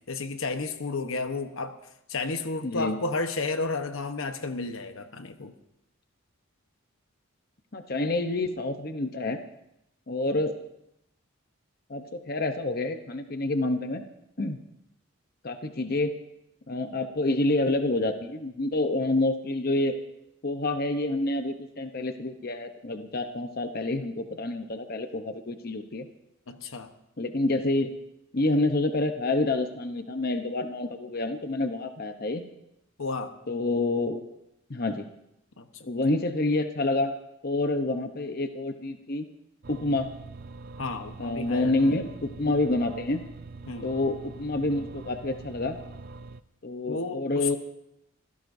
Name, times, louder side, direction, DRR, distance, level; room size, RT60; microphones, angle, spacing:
voice 1, 0.1-1.7 2.1-5.5 26.5-26.9 33.0-33.3 35.6-35.7 40.8-41.9 43.7-43.9 46.9-47.5, left 3 dB, 80° left, 8 dB, 1.1 m, -32 dB
voice 2, 2.6-3.0 7.7-9.4 10.1-10.6 11.9-14.0 14.4-14.6 15.4-16.1 16.7-20.0 20.4-26.1 27.2-27.9 28.3-32.4 33.5-34.2 34.7-35.1 35.9-37.1 37.4-39.3 39.7-40.1 41.2-43.2 43.8-45.8 46.6-47.6, left 2 dB, 45° left, 7 dB, 0.8 m, -28 dB
sound 1, 39.6-46.4, right 3 dB, 45° right, 0.5 m, -44 dB
25.5 x 16.0 x 2.7 m, 0.82 s
head